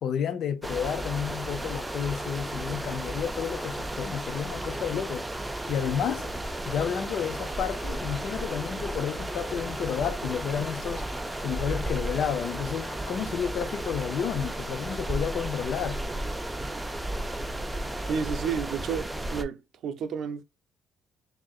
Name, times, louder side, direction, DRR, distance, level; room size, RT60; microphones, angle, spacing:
voice 1, 0.0-6.3 6.6-11.1 11.4-16.0, left 8 dB, 60° left, 0.6 m, -31 dB
sound 1, 0.6-19.4, right 1 dB, 10° right, 0.4 m, -34 dB
sound 2, 5.9-15.9, left 8 dB, 75° left, 1.4 m, -51 dB
voice 2, 18.1-20.4, right 6 dB, 65° right, 0.5 m, -31 dB
6.2 x 2.6 x 2.3 m
cardioid pair, 140°, 0 cm